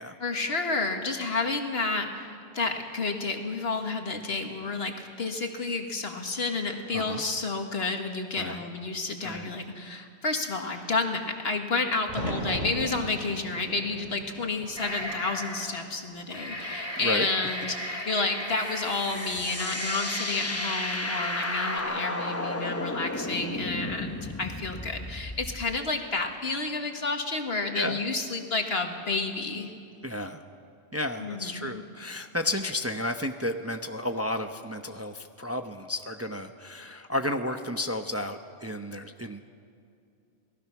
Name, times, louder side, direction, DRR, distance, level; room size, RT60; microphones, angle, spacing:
voice 1, 0.2-29.7 31.2-31.8, left 3 dB, 70° left, 4 dB, 2.0 m, -30 dB
voice 2, 6.9-7.2 8.3-8.6 9.2-9.5 17.0-17.3 27.7-28.0 30.0-30.4 30.9-39.5, left 1 dB, 15° right, 6 dB, 0.7 m, -32 dB
sound 1, 12.1-16.1 16.5-17.2 19.1-19.6, right 1 dB, 45° right, 3.4 m, -38 dB
sound 2, 14.8-15.8 16.2-21.8, equal, 30° left, 2.7 m, -36 dB
sound 3, 18.6-25.8, left 2 dB, 15° left, 0.9 m, -34 dB
28.0 x 19.0 x 6.0 m, 2.4 s
omnidirectional pair, 1.1 m